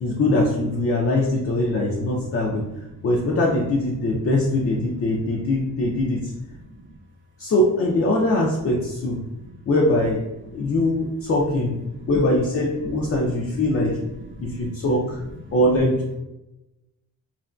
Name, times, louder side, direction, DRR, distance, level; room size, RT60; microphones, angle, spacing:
voice 1, 0.0-2.6 3.0-6.3 7.4-9.2 9.7-10.2 10.5-11.8 12.1-14.0 14.4-15.2 15.5-16.2, left 1 dB, 45° left, -3 dB, 0.4 m, -22 dB
voice 2, 1.9-3.1 6.5-6.9 9.4-9.5 10.6-10.8 12.0-12.1 12.8-12.9 13.2-14.7 15.1-15.6, right 2 dB, 35° right, 0 dB, 0.6 m, -43 dB
2.8 x 2.5 x 2.2 m, 0.97 s
wide cardioid pair, 105°, 33 cm